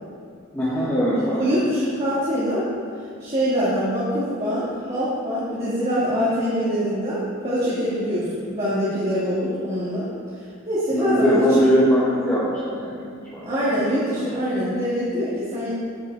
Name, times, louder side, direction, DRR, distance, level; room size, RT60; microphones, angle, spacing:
voice 1, 0.5-1.4 10.9-13.1 13.3-13.8 14.1-14.2, equal, 10° left, -10 dB, 1.5 m, -21 dB
voice 2, 1.2-2.6 3.2-10.1 10.7-11.6 13.4-15.7, equal, 30° right, -10 dB, 2.2 m, -24 dB
9.3 x 8.2 x 4.9 m, 2.2 s
head